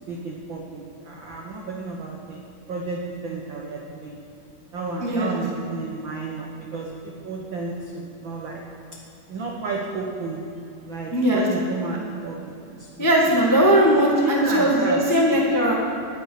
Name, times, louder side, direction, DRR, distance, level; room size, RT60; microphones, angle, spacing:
voice 1, 0.1-4.2 4.7-8.6 9.3-10.4 10.8-13.1 13.5-13.6 14.0-15.2, right 3 dB, 75° right, 0 dB, 1.1 m, -32 dB
voice 2, 11.1-11.5 13.0-15.7, right 1 dB, 25° left, -3 dB, 0.4 m, -19 dB
11.0 x 9.4 x 8.5 m, 2.7 s
omnidirectional pair, 3.7 m